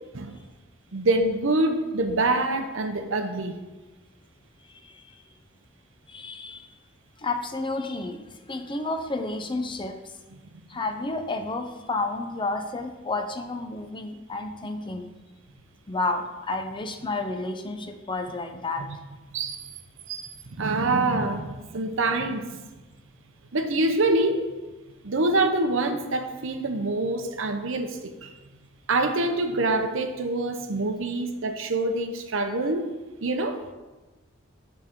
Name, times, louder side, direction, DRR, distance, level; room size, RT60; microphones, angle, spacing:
voice 1, 0.9-3.5 19.3-19.6 20.1-22.6 23.5-24.4 25.0-28.3 28.9-32.9 33.2-33.6, right 2 dB, 70° right, 7 dB, 0.8 m, -25 dB
voice 2, 4.7-5.3 6.1-6.7 7.2-10.1 10.7-15.1 15.9-18.8, left 2 dB, 25° left, 6 dB, 0.6 m, -31 dB
8.9 x 7.3 x 3.7 m, 1.2 s
head